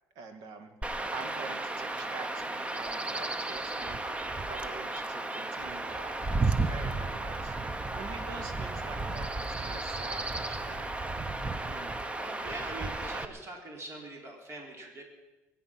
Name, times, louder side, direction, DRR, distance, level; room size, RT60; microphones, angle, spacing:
voice 1, 0.2-4.1 4.4-10.8 11.6-12.0 12.4-12.6, right 4 dB, 80° right, 7 dB, 2.0 m, -46 dB
Chirp tweet / Wind / Stream, 0.8-13.2, right 2 dB, 20° right, 0.9 m, -33 dB
voice 2, 12.2-15.0, right 2 dB, 45° right, 1 dB, 3.7 m, -43 dB
22.0 x 9.9 x 6.0 m, 1.1 s
cardioid pair, 95°, 6 cm